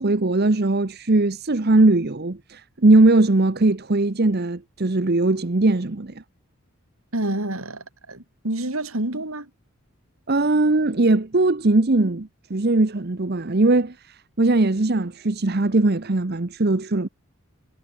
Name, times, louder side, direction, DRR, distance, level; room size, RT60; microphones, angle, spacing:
voice 1, 0.0-6.2 10.3-17.1, right 2 dB, 45° right, 0.9 m, -20 dB
voice 2, 7.1-9.5, right 1 dB, 75° right, 4.3 m, -28 dB
head